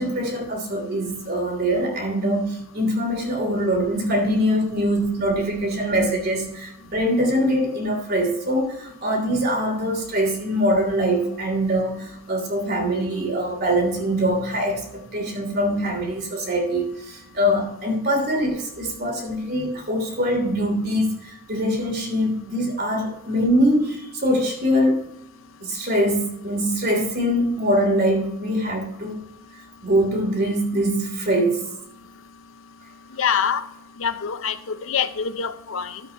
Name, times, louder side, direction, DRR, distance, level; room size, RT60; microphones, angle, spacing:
voice 1, 0.0-25.0 25.6-29.2 29.8-31.6, equal, 45° right, 3.0 m, -23 dB
voice 2, 33.2-33.6 34.0-36.0, left 7 dB, 70° left, 0.6 m, -25 dB
13.0 x 8.0 x 2.9 m
head